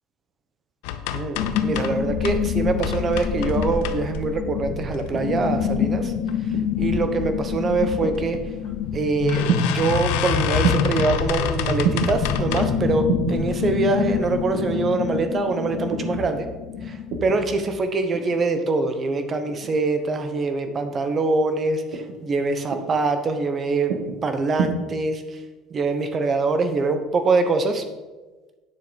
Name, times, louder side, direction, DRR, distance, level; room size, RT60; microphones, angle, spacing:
sound 1, 0.8-2.4 2.8-4.4 4.9-5.5 5.9-6.4 6.6-6.7 7.0-7.1 8.1-8.3 8.6-8.7 9.3-12.8 13.3-13.7 14.2-14.3 14.6-14.7, left 9 dB, 85° left, 0.7 m, -28 dB
voice 1, 1.1-6.1 6.8-8.4 8.9-16.5 16.8-23.9 24.2-25.4 25.7-27.8, right 3 dB, 25° right, 8 dB, 0.9 m, -24 dB
sound 2, 1.4-17.8, left 7 dB, 60° left, 1.0 m, -27 dB
sound 3, 5.1-5.6 6.5-6.9 8.0-8.5 9.5-9.9 10.6-11.1 11.8-12.1 13.1-13.4 14.5-14.8 15.9-16.2 17.1-17.4 18.1-18.4 19.5-19.8 20.7-21.0 21.9-22.2 22.7-23.0 23.9-24.2 24.6-24.7, right 6 dB, 75° right, 1.6 m, -27 dB
9.8 x 6.8 x 5.2 m, 1.2 s
cardioid pair, 155°, 0 cm